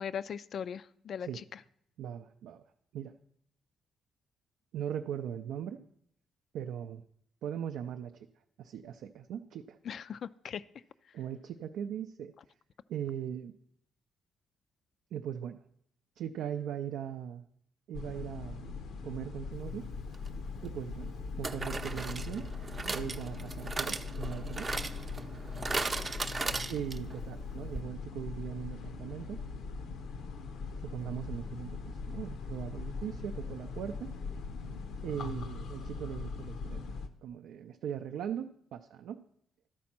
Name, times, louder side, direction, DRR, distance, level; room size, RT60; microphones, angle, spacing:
voice 1, 0.0-1.3 9.9-10.6, left 8 dB, 60° left, 16 dB, 0.3 m, -38 dB
voice 2, 2.0-2.6 2.9-3.2 4.7-5.8 6.5-7.0 7.4-8.3 8.6-9.8 11.1-12.3 12.9-13.5 15.1-15.6 16.2-17.4 17.9-18.8 19.0-19.9 20.6-22.5 22.8-24.9 26.7-29.4 30.8-34.1 35.0-36.8 37.2-39.2, right 9 dB, 80° right, 5 dB, 0.4 m, -39 dB
sound 1, 17.9-37.1, left 4 dB, 75° left, 0.7 m, -40 dB
sound 2, 20.1-20.3 21.4-27.2 27.5-27.6 27.8-27.9, right 3 dB, 30° right, 0.6 m, -37 dB
12.5 x 4.2 x 5.9 m, 0.71 s
cardioid pair, 90°, 0 cm